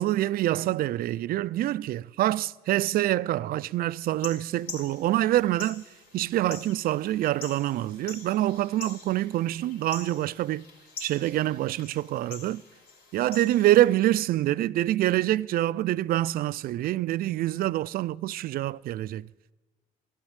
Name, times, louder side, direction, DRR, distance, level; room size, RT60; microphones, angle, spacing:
voice 1, 0.0-5.8 6.1-10.7 11.0-12.6 13.1-19.3, right 14 dB, 60° right, 0.4 m, -26 dB
sound 1, 4.0-14.1, left 4 dB, 70° left, 3.3 m, -45 dB
14.5 x 12.0 x 8.1 m
cardioid pair, 110°, 17 cm